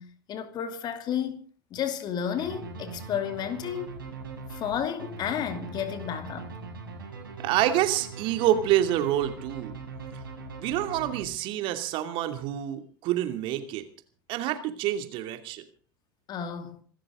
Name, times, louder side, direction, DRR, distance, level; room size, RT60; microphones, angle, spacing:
voice 1, 0.0-1.4 1.7-4.0 4.5-6.5 16.3-16.8, left 8 dB, 40° left, 2.6 m, -32 dB
sound 1, 2.4-11.7, right 4 dB, 80° right, 6.6 m, -41 dB
voice 2, 7.4-9.8 10.6-13.8 14.3-15.6, right 12 dB, 45° right, 2.7 m, -27 dB
26.0 x 13.5 x 3.8 m
figure-of-eight pair, 80°, 11 cm